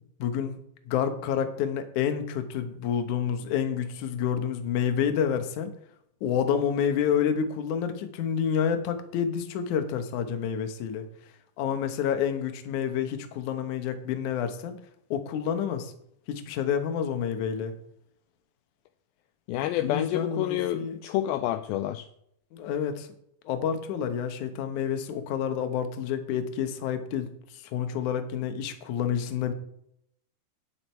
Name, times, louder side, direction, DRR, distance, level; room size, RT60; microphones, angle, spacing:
voice 1, 0.2-0.6 0.9-5.7 6.2-11.1 11.6-14.8 15.1-15.9 16.3-17.7 19.8-21.0 22.5-23.1 23.5-29.5, left 8 dB, 65° left, 8 dB, 2.2 m, -29 dB
voice 2, 19.5-22.1, left 13 dB, 80° left, 9 dB, 2.3 m, -28 dB
10.0 x 9.8 x 4.5 m, 0.72 s
omnidirectional pair, 4.4 m